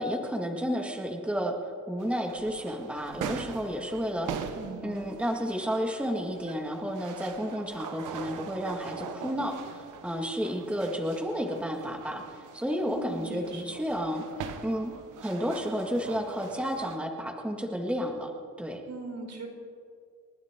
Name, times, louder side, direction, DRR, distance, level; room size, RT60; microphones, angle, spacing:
voice 1, 0.0-1.5 1.9-4.3 4.8-14.2 14.6-14.9 15.2-18.3 18.6-18.8, equal, 5° right, 1 dB, 1.9 m, -31 dB
sound 1, 2.0-17.0, right 7 dB, 85° right, 1.2 m, -42 dB
voice 2, 4.5-5.0 12.9-13.6 18.8-19.5, right 3 dB, 65° right, -1 dB, 4.4 m, -40 dB
29.5 x 11.5 x 3.7 m, 2.2 s
cardioid pair, 100°, 31 cm